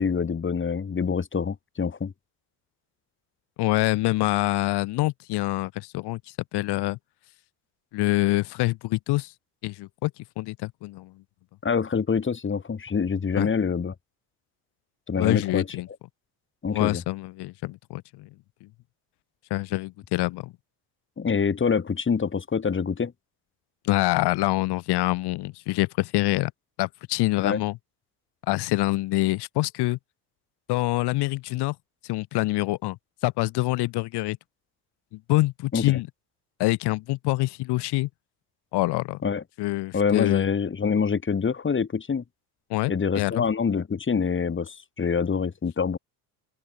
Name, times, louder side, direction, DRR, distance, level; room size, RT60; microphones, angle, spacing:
voice 1, 0.0-2.1 11.6-13.9 15.1-15.7 16.6-17.0 21.2-23.1 27.4-27.6 35.7-36.0 39.2-39.4 39.9-42.2 42.9-46.0, left 6 dB, 25° left, 5.9 m, -26 dB
voice 2, 3.6-6.2 6.5-7.0 7.9-9.3 9.6-10.1 10.4-11.1 13.3-13.5 15.2-15.9 16.7-18.3 18.6-18.7 19.5-20.5 23.8-26.5 26.8-27.8 28.5-30.0 30.7-31.7 32.0-33.0 33.2-34.4 35.1-36.1 36.6-38.1 38.7-39.2 39.6-40.5 42.7-43.4, left 19 dB, 65° left, 3.3 m, -25 dB
open air
supercardioid pair, 95°, 43 cm